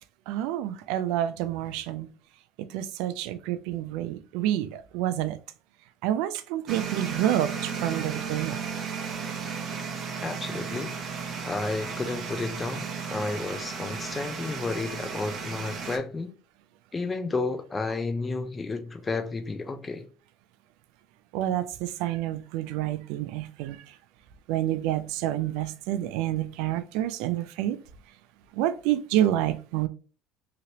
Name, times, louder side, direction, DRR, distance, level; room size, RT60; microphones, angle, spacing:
voice 1, 0.3-2.1 2.6-5.4 6.0-8.6 21.3-23.9 24.5-27.8 28.5-29.9, right 12 dB, 80° right, 0.3 m, -28 dB
sound 1, 6.7-16.0, right 6 dB, 45° right, 0.7 m, -34 dB
voice 2, 10.2-10.9 11.4-16.3 16.9-20.1, left 3 dB, 20° left, 0.5 m, -32 dB
2.9 x 2.9 x 2.8 m
supercardioid pair, 110°, 0 cm